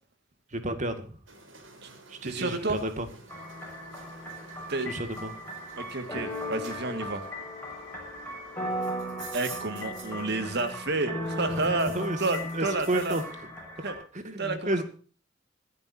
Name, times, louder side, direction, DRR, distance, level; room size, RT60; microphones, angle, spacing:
voice 1, 0.5-1.1 2.1-3.1 4.9-5.3 11.9-12.2 12.5-13.2 14.1-14.8, right 1 dB, 40° right, 8 dB, 2.1 m, -31 dB
sound 1, 1.3-10.9 11.2-13.3, right 5 dB, 90° right, 4.4 m, -50 dB
voice 2, 2.2-2.8 4.7-4.9 5.8-7.2 9.3-13.2 13.8-14.0 14.4-14.8, right 3 dB, 60° right, 8 dB, 1.9 m, -30 dB
sound 2, 3.3-13.9, equal, 10° left, 6.0 m, -36 dB
26.5 x 10.5 x 2.7 m, 0.40 s
head